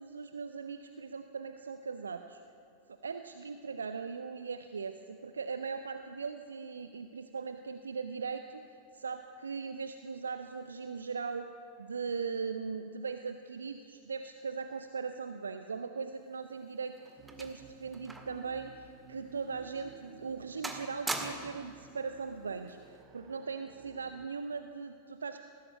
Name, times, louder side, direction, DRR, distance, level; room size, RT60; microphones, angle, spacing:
voice 1, 0.0-2.4 3.0-8.6 8.9-11.5 11.8-25.4, right 5 dB, 75° right, 8 dB, 0.8 m, -39 dB
sound 1, 16.3-18.4 18.7-18.9 19.5-19.7 20.1-20.4 20.6-21.7 22.7-23.0, right 2 dB, 10° right, 1.9 m, -41 dB
sound 2, 17.2-24.3, right 8 dB, 35° right, 1.5 m, -55 dB
20.0 x 16.5 x 8.1 m, 2.7 s
figure-of-eight pair, 90°, 0 cm